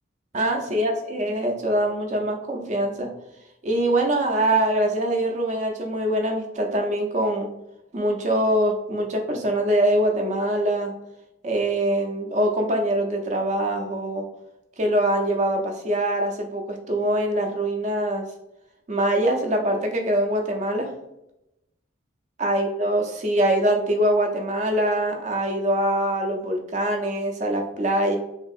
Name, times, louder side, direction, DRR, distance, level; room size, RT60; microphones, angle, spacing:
voice 1, 0.3-3.1 3.6-7.5 7.9-10.9 11.4-14.3 14.8-18.3 18.9-20.9 22.4-28.2, right 1 dB, 35° right, 3 dB, 0.4 m, -23 dB
3.3 x 2.6 x 2.4 m, 0.88 s
head